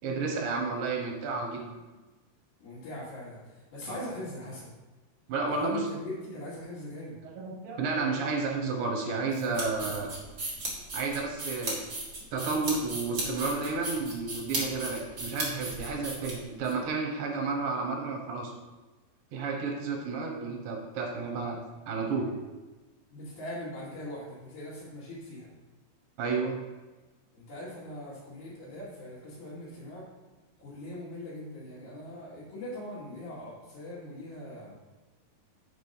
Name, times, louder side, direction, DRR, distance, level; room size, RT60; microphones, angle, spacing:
voice 1, 0.0-1.6 3.9-4.0 5.3-5.9 7.2-10.1 10.9-11.8 12.3-18.5 19.3-21.6 21.9-22.3 26.2-26.6, right 4 dB, 65° right, 1 dB, 2.6 m, -31 dB
voice 2, 2.6-4.7 5.4-7.2 23.1-25.5 27.3-30.1 30.6-34.7, left 1 dB, 65° left, -12 dB, 3.8 m, -41 dB
sound 1, 9.3-16.7, right 2 dB, 40° right, 1.3 m, -36 dB
7.1 x 5.1 x 5.5 m, 1.2 s
omnidirectional pair, 4.7 m